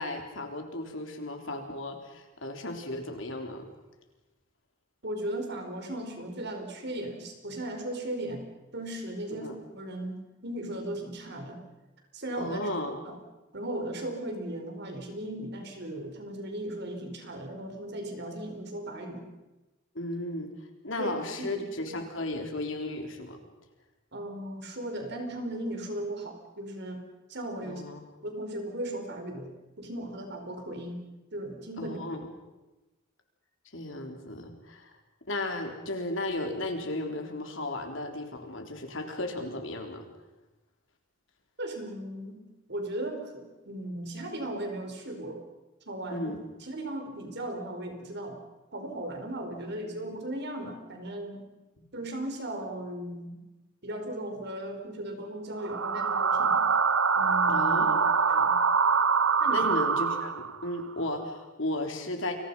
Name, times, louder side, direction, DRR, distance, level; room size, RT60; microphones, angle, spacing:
voice 1, 0.0-3.7 9.4-9.6 12.4-13.0 19.9-20.5 20.8-23.4 27.6-28.0 31.8-32.3 33.7-34.9 35.3-40.0 46.1-46.4 57.5-58.0 59.5-62.3, left 1 dB, 65° left, 4 dB, 3.9 m, -34 dB
voice 2, 5.0-11.6 12.1-12.7 13.0-13.2 13.5-19.3 21.0-21.1 21.4-22.0 24.1-27.0 27.3-27.8 28.2-31.0 31.3-32.0 41.6-45.4 45.9-46.3 46.6-48.4 48.7-51.4 51.9-53.4 53.8-56.7 57.2-57.7 58.3-58.6 59.4-59.7, right 1 dB, 55° right, 4 dB, 4.8 m, -37 dB
sound 1, 55.6-60.7, right 5 dB, 85° right, 1.3 m, -24 dB
29.5 x 22.5 x 5.7 m, 1.1 s
head